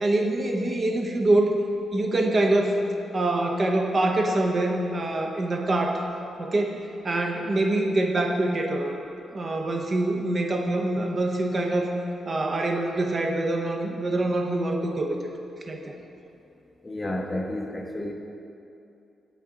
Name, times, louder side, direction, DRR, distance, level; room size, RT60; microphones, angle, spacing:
voice 1, 0.0-1.6 1.9-2.8 3.1-6.0 6.4-9.0 9.3-11.9 12.2-15.2 15.7-16.0, right 2 dB, 40° right, 2 dB, 0.8 m, -25 dB
voice 2, 16.8-18.1, left 1 dB, 20° left, 2 dB, 0.6 m, -31 dB
8.2 x 5.6 x 3.7 m, 2.7 s
cardioid pair, 90°, 0 cm